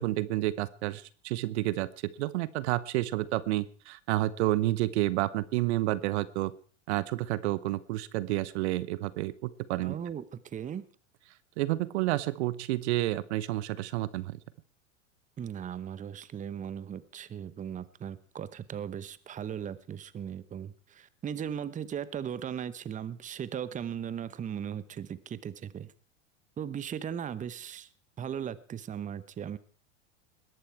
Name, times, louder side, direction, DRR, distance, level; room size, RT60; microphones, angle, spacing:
voice 1, 0.0-6.5 6.9-9.9 11.6-14.4, right 16 dB, 65° right, 18 dB, 0.9 m, -30 dB
voice 2, 9.8-10.9 15.4-25.9 26.6-27.9 28.2-29.6, right 8 dB, 20° right, 16 dB, 0.9 m, -38 dB
20.5 x 11.5 x 4.6 m, 0.41 s
hypercardioid pair, 100°, 37 cm